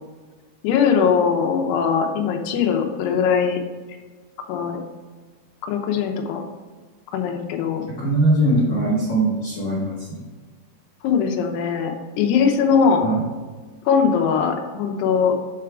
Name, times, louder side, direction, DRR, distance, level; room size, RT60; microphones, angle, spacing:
voice 1, 0.6-3.6 4.4-4.8 5.6-6.4 7.1-7.8 11.0-13.1 13.9-15.3, left 6 dB, 80° left, 3 dB, 2.7 m, -20 dB
voice 2, 7.9-10.2 13.0-13.2, right 1 dB, 60° left, -8 dB, 1.3 m, -21 dB
7.6 x 3.6 x 4.7 m, 1.4 s
omnidirectional pair, 5.1 m